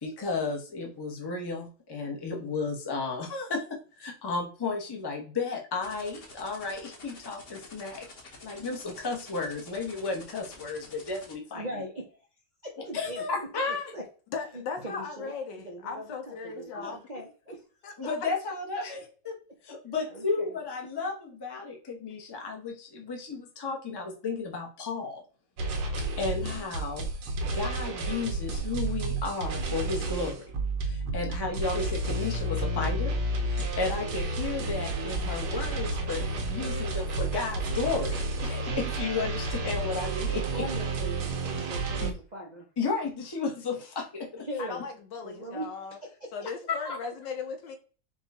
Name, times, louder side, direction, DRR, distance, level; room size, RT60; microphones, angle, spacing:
voice 1, 0.0-8.1 8.4-11.6 12.9-13.9 16.8-16.9 18.0-19.3 19.6-25.2 26.2-27.1 27.4-30.4 30.8-40.7 42.0-42.2 42.8-44.5 46.8-47.0, left 4 dB, 25° left, 0.5 m, -33 dB
sound 1, 5.8-11.3, left 3 dB, 40° left, 1.0 m, -49 dB
voice 2, 11.5-12.3 12.6-14.0 14.5-17.6 20.0-20.6 22.2-22.3 40.5-41.3 41.7-42.7 44.4-44.8 45.2-46.3, right 1 dB, 50° right, 0.5 m, -40 dB
voice 3, 14.3-17.0 17.8-18.2 44.6-46.0 46.3-47.8, left 5 dB, 80° left, 1.5 m, -37 dB
sound 2, 25.6-42.1, right 2 dB, 70° right, 1.3 m, -31 dB
4.5 x 2.3 x 4.0 m
omnidirectional pair, 1.9 m